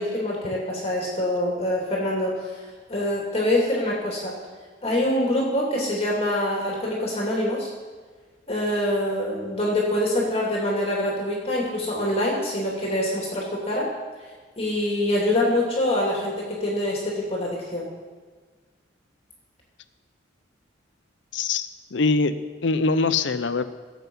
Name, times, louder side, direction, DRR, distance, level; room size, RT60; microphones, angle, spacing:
voice 1, 0.0-2.5 2.9-4.3 4.8-7.7 8.5-13.9 14.6-17.9, left 1 dB, 35° left, -3 dB, 2.7 m, -25 dB
voice 2, 21.3-23.6, left 3 dB, 70° left, 12 dB, 0.6 m, -23 dB
17.0 x 7.8 x 5.5 m, 1.4 s
head